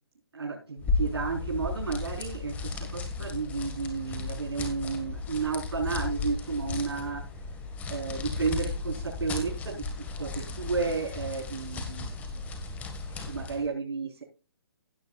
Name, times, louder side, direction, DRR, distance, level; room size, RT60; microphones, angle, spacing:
voice 1, 0.3-7.2 7.9-12.4 13.3-14.2, right 4 dB, 90° right, -1 dB, 4.4 m, -32 dB
sound 1, 0.8-13.7, left 3 dB, 10° left, 1.7 m, -35 dB
16.5 x 7.8 x 2.4 m, 0.31 s
hypercardioid pair, 160°, 13 cm